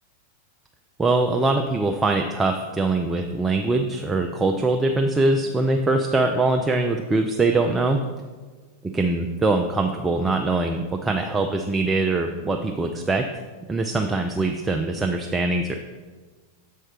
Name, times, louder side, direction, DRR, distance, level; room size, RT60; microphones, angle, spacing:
voice 1, 1.0-8.0 8.9-13.3 13.7-15.8, right 2 dB, 10° right, 4 dB, 0.5 m, -22 dB
7.6 x 4.3 x 4.9 m, 1.4 s
figure-of-eight pair, 90°, 0 cm